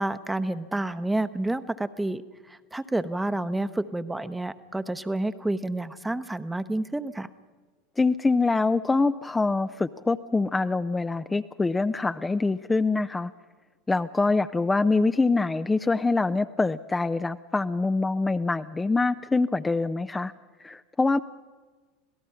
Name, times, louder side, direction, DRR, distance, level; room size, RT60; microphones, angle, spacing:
voice 1, 0.0-7.3, right 2 dB, 10° right, 11 dB, 0.9 m, -29 dB
voice 2, 8.0-13.3 13.9-20.3 20.6-21.2, left 3 dB, 15° left, 10 dB, 0.5 m, -24 dB
26.0 x 17.5 x 5.7 m, 1.4 s
hypercardioid pair, 85°, 0 cm